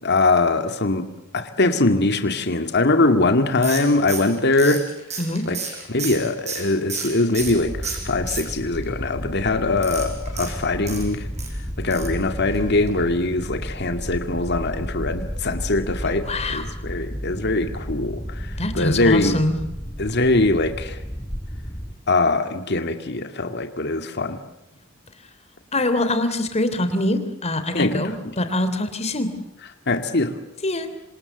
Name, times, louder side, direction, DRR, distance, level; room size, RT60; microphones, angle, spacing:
voice 1, 0.0-1.1 1.3-4.9 5.5-5.6 5.9-11.3 11.8-19.4 20.0-21.0 22.1-24.4 27.7-28.1 29.9-30.3, left 2 dB, 55° left, 7 dB, 2.2 m, -22 dB
sound 1, 3.6-7.6 7.8-8.8 9.8-11.5 11.9-12.2 12.5-12.6 12.9-13.0, right 5 dB, 35° right, 7.1 m, -32 dB
voice 2, 5.2-5.5 16.2-16.6 18.6-19.5 25.7-29.4 30.6-30.9, left 1 dB, 35° left, 10 dB, 3.2 m, -24 dB
sound 2, 7.3-22.0, equal, 10° left, 1.8 m, -32 dB
27.5 x 26.5 x 8.0 m, 0.87 s
head